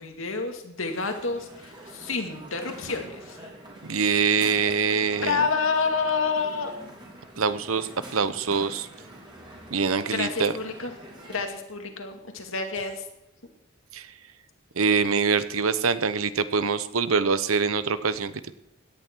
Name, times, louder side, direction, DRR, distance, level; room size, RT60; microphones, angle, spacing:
voice 1, 0.0-3.4 5.1-6.7 10.1-11.0 11.3-13.0, left 4 dB, 70° left, 4 dB, 2.3 m, -29 dB
Crowd, 0.8-11.4, right 1 dB, 25° right, 3.2 m, -45 dB
voice 2, 3.9-5.4 7.4-8.9 9.7-10.5 13.9-14.1 14.8-18.3, right 5 dB, 85° right, 14 dB, 0.9 m, -24 dB
17.0 x 10.5 x 4.6 m, 0.93 s
head